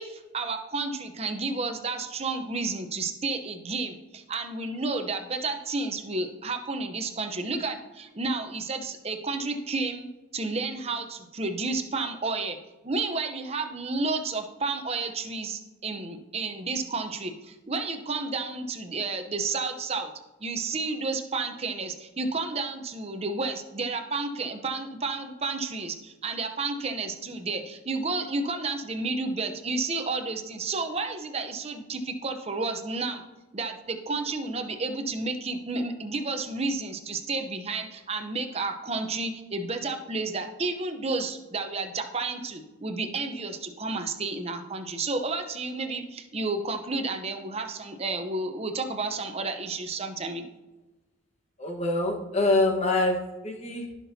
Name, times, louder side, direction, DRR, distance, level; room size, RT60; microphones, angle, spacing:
voice 1, 0.0-10.1 10.3-12.6 12.8-20.1 20.4-33.2 33.5-50.5, right 3 dB, 30° right, 6 dB, 0.8 m, -31 dB
voice 2, 51.6-53.2 53.4-53.9, left 2 dB, 30° left, 1 dB, 1.3 m, -25 dB
15.0 x 6.0 x 2.8 m, 1.1 s
head